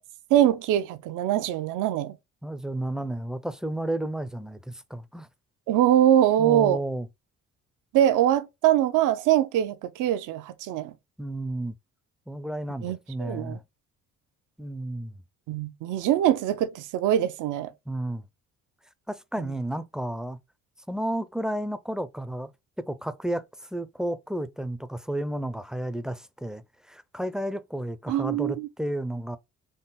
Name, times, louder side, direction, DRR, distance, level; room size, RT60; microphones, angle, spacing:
voice 1, 0.3-2.2 5.7-6.8 7.9-10.9 12.8-13.6 15.5-17.7 28.1-28.7, right 11 dB, 85° right, 0.5 m, -23 dB
voice 2, 2.4-5.3 6.4-7.1 11.2-11.8 12.3-13.6 14.6-15.2 17.9-18.3 19.1-20.4 20.9-22.5 22.8-23.4 23.7-29.4, right 1 dB, ahead, 0.3 m, -32 dB
3.8 x 2.0 x 3.9 m
cardioid pair, 90°, 30 cm